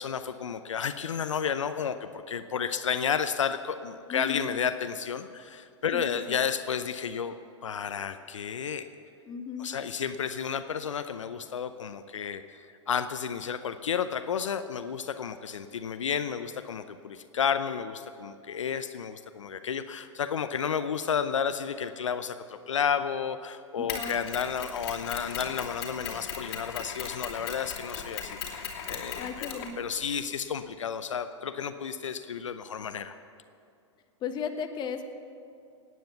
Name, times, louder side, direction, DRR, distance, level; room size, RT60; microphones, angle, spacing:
voice 1, 0.0-7.4 7.6-8.9 9.6-33.1, left 7 dB, 80° left, 10 dB, 0.7 m, -32 dB
voice 2, 4.1-4.5 5.9-6.4 9.2-9.7 23.8-24.2 29.2-29.8 34.2-35.0, left 6 dB, 30° left, 7 dB, 1.3 m, -35 dB
Mechanisms, 23.9-30.2, left 7 dB, 55° left, 2.7 m, -38 dB
17.5 x 9.5 x 7.0 m, 2.6 s
hypercardioid pair, 105°, 16 cm